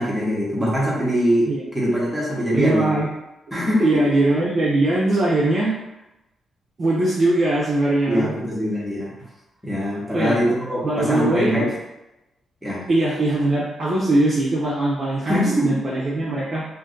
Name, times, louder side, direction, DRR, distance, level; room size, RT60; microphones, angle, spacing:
voice 1, 0.0-1.5 1.7-2.9 3.5-3.9 8.1-9.1 9.6-11.7 12.6-12.9 15.3-15.8, equal, ahead, -6 dB, 0.9 m, -22 dB
voice 2, 2.5-3.1 3.8-5.7 6.8-8.3 10.1-10.4 10.8-11.6 12.9-16.6, right 2 dB, 35° right, -7 dB, 0.6 m, -21 dB
2.5 x 2.5 x 3.7 m, 0.95 s
wide cardioid pair, 160°, 0 cm